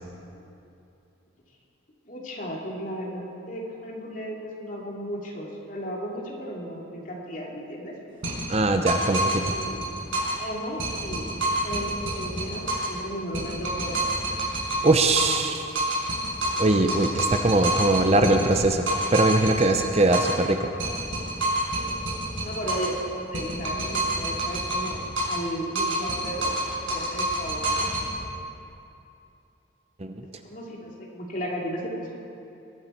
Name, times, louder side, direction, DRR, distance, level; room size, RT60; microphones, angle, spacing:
voice 1, 2.1-7.9 9.2-9.8 10.4-14.0 22.4-25.0 25.2-26.5 26.9-28.1 30.4-32.1, equal, 40° left, -3 dB, 2.8 m, -35 dB
sound 1, 8.2-10.5 10.8-13.0 13.3-15.5 15.7-20.5 20.8-23.0 23.3-25.5 25.7-28.1, right 1 dB, 85° right, 4.8 m, -28 dB
voice 2, 8.5-9.4 14.8-15.8 16.6-20.7 30.0-30.1, right 2 dB, 30° right, 6 dB, 0.7 m, -21 dB
22.0 x 13.5 x 4.5 m, 2.7 s
head